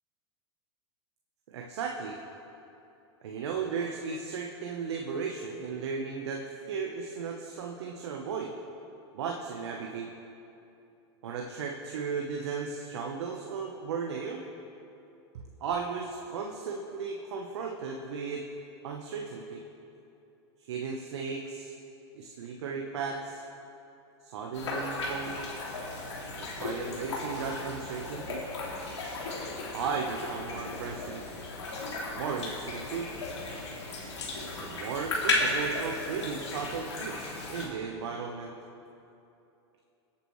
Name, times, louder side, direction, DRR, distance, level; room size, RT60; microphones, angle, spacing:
voice 1, 1.5-2.2 3.2-8.5 9.1-10.1 11.2-14.4 15.3-18.5 18.8-19.6 20.7-21.7 22.1-23.4 24.2-25.4 26.3-28.4 29.7-31.2 32.2-33.1 34.6-38.5, right 5 dB, 75° right, 1 dB, 1.0 m, -35 dB
sound 1, 24.5-37.7, left 2 dB, 90° left, 2.5 m, -35 dB
22.5 x 8.6 x 3.2 m, 2.8 s
hypercardioid pair, 105°, 14 cm